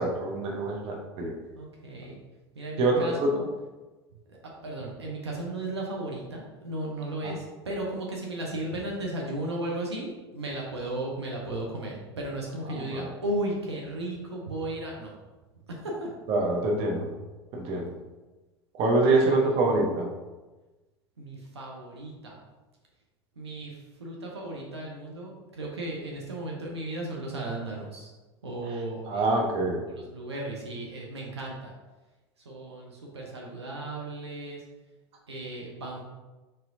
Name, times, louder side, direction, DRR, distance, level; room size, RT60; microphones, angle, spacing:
voice 1, 0.0-1.3 2.8-3.4 7.2-7.4 12.7-13.1 16.3-17.1 17.5-17.9 18.7-20.1 29.1-29.8, right 2 dB, 45° right, 1 dB, 0.8 m, -25 dB
voice 2, 1.5-2.2 2.5-3.5 4.3-15.1 15.8-16.1 19.1-19.6 21.2-22.4 23.4-28.1 28.4-29.2 29.9-31.7 32.4-34.6 35.3-36.1, right 1 dB, 80° right, -2 dB, 0.8 m, -35 dB
4.2 x 3.7 x 2.6 m, 1.2 s
figure-of-eight pair, 80°, 14 cm